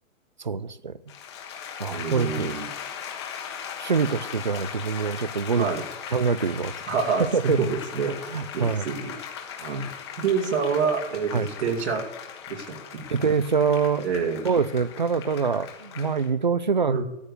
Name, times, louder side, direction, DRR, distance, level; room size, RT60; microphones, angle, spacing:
voice 1, 0.4-0.9 1.8-2.6 3.8-5.7 6.1-6.7 7.3-7.6 8.3-8.9 11.3-11.5 13.1-14.1 14.4-17.0, right 5 dB, 40° right, 0.4 m, -25 dB
sound 1, 1.1-16.3, left 8 dB, 20° left, 1.3 m, -38 dB
voice 2, 1.9-2.7 5.6-5.8 6.9-8.2 8.5-9.2 9.6-9.9 10.2-11.3 11.6-12.0 12.5-13.1 14.0-14.5 16.9-17.0, right 5 dB, 55° right, 2.5 m, -27 dB
14.5 x 9.0 x 6.6 m
hypercardioid pair, 180°, 40 cm